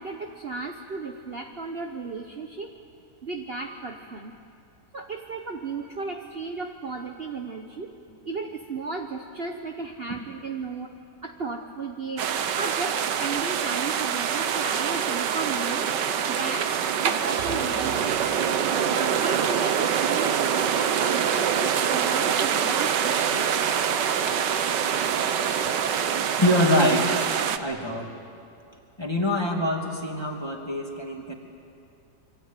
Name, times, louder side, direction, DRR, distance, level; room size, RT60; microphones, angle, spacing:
voice 1, 0.0-2.7 3.2-4.3 4.9-7.9 8.2-10.9 11.2-12.3 12.6-15.9 16.3-16.7 17.0-18.2 18.8-23.6, right 4 dB, 40° right, 3 dB, 1.2 m, -34 dB
sound 1, 12.2-27.6, right 8 dB, 85° right, 1.6 m, -25 dB
voice 2, 26.4-27.3 27.6-28.1 29.0-31.3, left 1 dB, 15° left, 1 dB, 2.7 m, -24 dB
27.0 x 24.5 x 9.1 m, 2.5 s
omnidirectional pair, 1.8 m